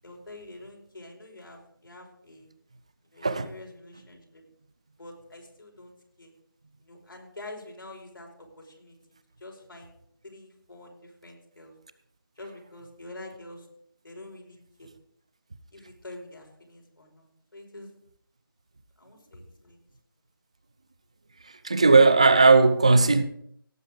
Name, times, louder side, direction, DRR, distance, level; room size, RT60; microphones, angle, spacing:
voice 1, 0.0-2.5 3.0-4.4 5.0-6.3 6.8-9.0 9.4-9.9 10.2-11.7 12.3-13.7 14.0-14.9 15.7-17.9 19.0-19.8, left 2 dB, 70° left, 5.1 m, -46 dB
voice 2, 21.6-23.2, right 3 dB, 15° right, 0.4 m, -17 dB
17.5 x 8.7 x 3.7 m
figure-of-eight pair, 165°, 12 cm